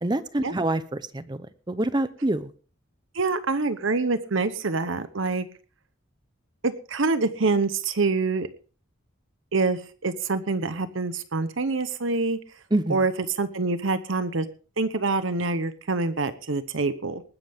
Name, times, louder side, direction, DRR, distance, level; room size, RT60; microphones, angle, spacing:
voice 1, 0.0-2.5 12.7-13.0, right 1 dB, 20° right, 13 dB, 0.6 m, -26 dB
voice 2, 3.1-5.5 6.6-8.5 9.5-12.4 12.9-14.5 14.8-17.2, right 3 dB, 70° right, 12 dB, 0.9 m, -26 dB
20.0 x 11.0 x 3.6 m, 0.39 s
head